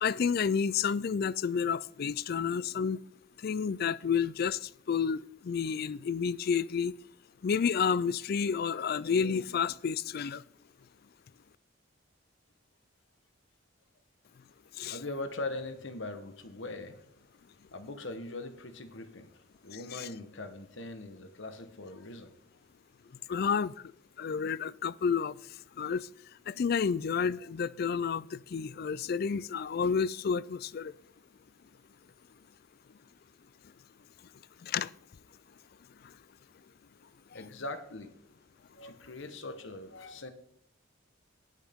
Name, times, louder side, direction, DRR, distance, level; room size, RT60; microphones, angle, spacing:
voice 1, 0.0-3.0 3.4-6.9 7.4-10.4 14.7-15.0 19.7-20.1 23.3-23.9 24.2-26.1 26.5-30.9 34.6-34.9 36.0-36.1 37.3-37.4, left 6 dB, 50° left, 0.3 m, -30 dB
voice 2, 14.9-17.0 17.7-19.3 19.6-22.3 37.3-38.1 38.7-40.3, left 2 dB, 65° left, 1.2 m, -41 dB
19.0 x 6.4 x 3.6 m
head